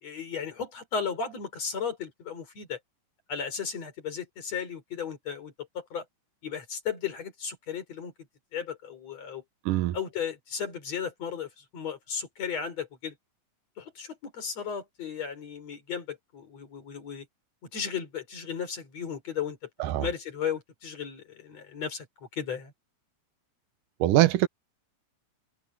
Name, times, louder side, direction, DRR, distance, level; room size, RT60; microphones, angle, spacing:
voice 1, 0.0-2.8 3.3-6.1 6.4-8.1 8.5-9.4 9.9-13.1 13.8-17.3 17.7-19.6 20.0-22.1 22.3-22.7, left 7 dB, 50° left, 5.3 m, -35 dB
voice 2, 9.7-10.0 19.8-20.1 24.0-24.5, right 15 dB, 85° right, 2.4 m, -22 dB
omnidirectional pair, 3.8 m